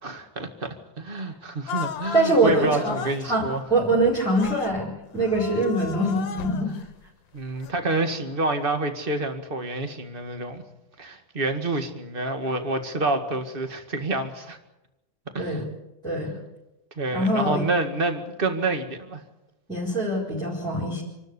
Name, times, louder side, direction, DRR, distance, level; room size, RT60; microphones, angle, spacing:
voice 1, 0.0-3.6 7.3-10.6 11.0-14.6 15.3-15.6 17.0-19.2, right 2 dB, 30° right, 7 dB, 2.0 m, -28 dB
sound 1, 1.7-3.2 4.3-4.8 5.1-6.8 7.6-7.7, left 8 dB, 70° left, 1.7 m, -35 dB
voice 2, 2.1-6.7 15.4-15.6 16.0-16.3 17.1-17.6 19.7-21.0, right 1 dB, ahead, -3 dB, 4.7 m, -24 dB
27.0 x 12.5 x 9.8 m, 0.95 s
omnidirectional pair, 2.1 m